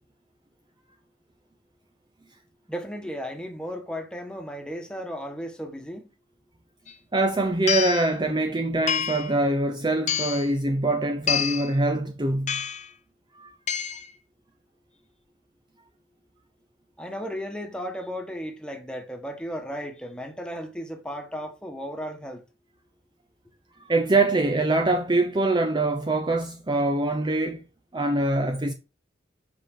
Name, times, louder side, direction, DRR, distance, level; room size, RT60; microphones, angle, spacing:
voice 1, 2.7-6.1 17.0-22.4, equal, 5° left, 1.3 m, -35 dB
sound 1, 6.9-7.0 7.7-8.1 8.9-9.3 10.1-10.5 11.3-11.7 12.5-12.9 13.7-14.1, left 9 dB, 35° left, 0.6 m, -27 dB
voice 2, 7.1-12.6 13.3-13.6 23.9-27.6 27.9-28.7, right 2 dB, 25° right, 0.5 m, -24 dB
7.6 x 5.2 x 3.7 m
head